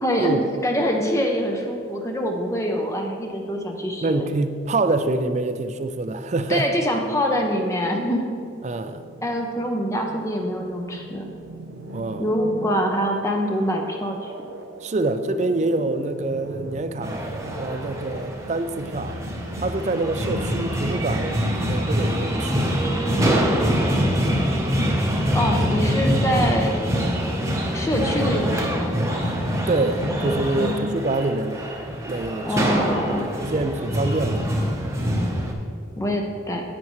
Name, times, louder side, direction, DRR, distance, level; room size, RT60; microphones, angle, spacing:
voice 1, 0.0-4.2 6.5-8.3 9.2-11.3 12.2-14.3 25.3-26.7 27.7-29.0 30.6-30.9 32.5-33.3 36.0-36.6, equal, 15° left, 2 dB, 0.6 m, -24 dB
voice 2, 4.0-6.7 8.6-9.0 11.9-12.3 14.8-17.3 17.6-19.2 19.6-22.8 29.7-31.7 32.1-32.7 33.4-34.5, right 2 dB, 40° right, 9 dB, 0.4 m, -26 dB
sound 1, 8.2-22.5, right 2 dB, 90° right, 0.7 m, -40 dB
sound 2, 17.0-35.5, equal, 15° right, 0.9 m, -24 dB
10.5 x 8.5 x 3.1 m, 2.4 s
head